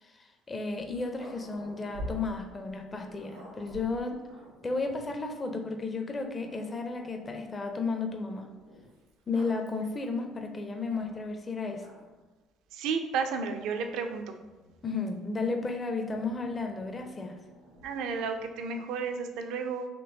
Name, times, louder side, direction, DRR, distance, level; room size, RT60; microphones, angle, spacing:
voice 1, 0.0-4.2 4.6-8.5 9.3-11.9 14.8-17.4, left 3 dB, 30° left, 4 dB, 0.5 m, -33 dB
Growling, 0.7-5.3 6.0-6.1 6.4-7.5 8.6-11.4 11.7-12.3 13.1-15.0 16.1-18.6, equal, 85° right, 1.0 m, -49 dB
voice 2, 12.7-14.2 17.8-19.9, right 5 dB, 65° right, 6 dB, 0.4 m, -32 dB
4.4 x 3.1 x 2.7 m, 1.2 s
hypercardioid pair, 50°, 0 cm